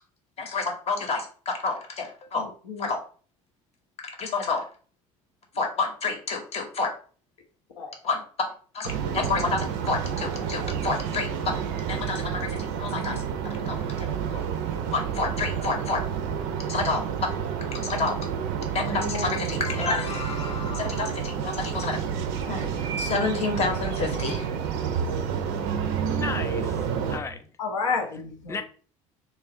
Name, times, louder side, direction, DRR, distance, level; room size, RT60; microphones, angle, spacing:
voice 1, 0.4-2.5 2.8-3.0 4.2-4.7 5.5-6.9 8.0-8.2 8.7-11.6 11.9-13.2 13.7-14.4 14.9-16.0 16.7-17.0 17.7-18.2 18.7-22.0 22.5-22.7 23.0-24.5, left 4 dB, 35° left, 0.8 m, -29 dB
voice 2, 2.4-2.9 7.8-7.9 9.0-9.5 13.1-13.2 18.8-19.3 19.8-20.0 23.7-23.8 27.6-28.6, left 4 dB, 75° left, 0.5 m, -32 dB
sound 1, 8.8-27.2, right 7 dB, 60° right, 0.4 m, -29 dB
voice 3, 26.1-27.5 28.5-28.6, left 4 dB, 15° left, 0.4 m, -35 dB
3.1 x 2.3 x 2.6 m
figure-of-eight pair, 60°, 17 cm